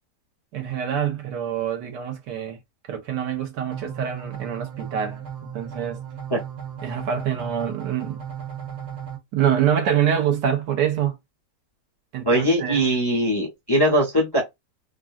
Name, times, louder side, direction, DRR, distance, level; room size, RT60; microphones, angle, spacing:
voice 1, 0.5-2.6 2.9-6.0 6.8-8.2 9.3-11.2 12.1-12.9, right 9 dB, 80° right, 1.5 m, -25 dB
sound 1, 3.7-9.2, right 8 dB, 50° right, 1.4 m, -36 dB
voice 2, 12.3-14.4, right 1 dB, 20° left, 0.6 m, -21 dB
3.7 x 2.2 x 2.3 m
omnidirectional pair, 1.8 m